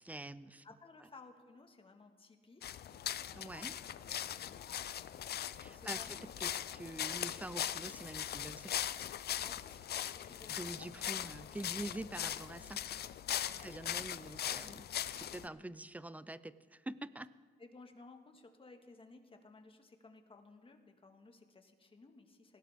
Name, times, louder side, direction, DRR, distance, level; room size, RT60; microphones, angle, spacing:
voice 1, 0.0-0.6 3.3-3.7 5.6-8.7 10.4-12.8 13.6-14.9 15.1-17.3, right 1 dB, 10° right, 16 dB, 0.5 m, -46 dB
voice 2, 0.6-2.8 3.4-5.1 5.6-6.6 9.4-10.9 11.4-11.7 13.4-13.7 15.4-15.7 17.6-22.6, left 3 dB, 25° left, 5 dB, 1.7 m, -58 dB
sound 1, 2.6-15.5, left 11 dB, 55° left, 0.5 m, -40 dB
sound 2, 2.9-10.6, right 5 dB, 60° right, 1.5 m, -65 dB
Wind instrument woodwind instrument, 10.4-15.2, right 3 dB, 10° left, 3.3 m, -66 dB
19.0 x 16.5 x 3.6 m, 1.5 s
cardioid pair, 90°, 20 cm